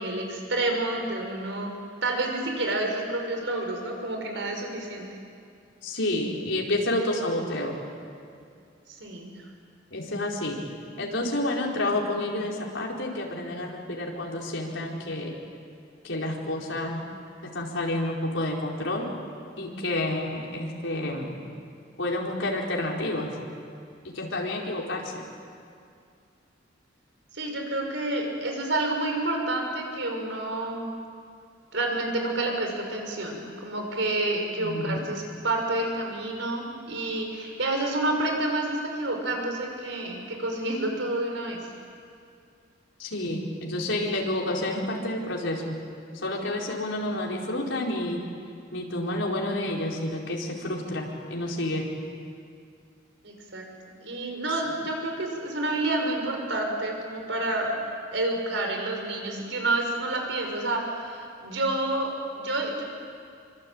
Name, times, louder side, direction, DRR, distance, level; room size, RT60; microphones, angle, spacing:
voice 1, 0.0-5.1 8.9-9.3 27.3-30.9 31.7-41.6 53.2-57.8 58.1-62.8, right 2 dB, 70° right, 2 dB, 5.6 m, -29 dB
voice 2, 5.8-7.8 9.9-10.6 11.0-15.3 16.0-17.0 17.4-19.1 19.6-21.4 22.0-23.3 24.0-25.2 34.6-35.0 43.0-45.8 46.1-48.2 48.7-51.8, left 1 dB, 80° left, -2 dB, 4.7 m, -29 dB
25.5 x 25.0 x 8.8 m, 2.4 s
head